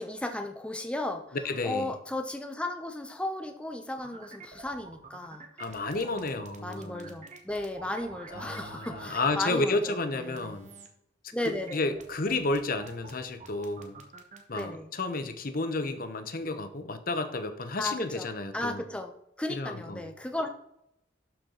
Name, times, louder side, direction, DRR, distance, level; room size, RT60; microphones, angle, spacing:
voice 1, 0.0-1.4 1.6-5.5 6.0-10.6 11.3-11.9 14.5-14.9 17.8-19.1 19.4-20.5, left 1 dB, 5° left, 5 dB, 0.7 m, -35 dB
voice 2, 1.4-1.9 5.6-7.2 8.3-10.7 11.5-14.0 14.5-18.8 19.5-20.1, left 2 dB, 50° left, 9 dB, 0.8 m, -32 dB
sound 1, 4.0-9.4 10.3-10.9 11.4-14.6, right 3 dB, 40° right, 1.1 m, -47 dB
12.0 x 4.6 x 3.9 m, 0.77 s
head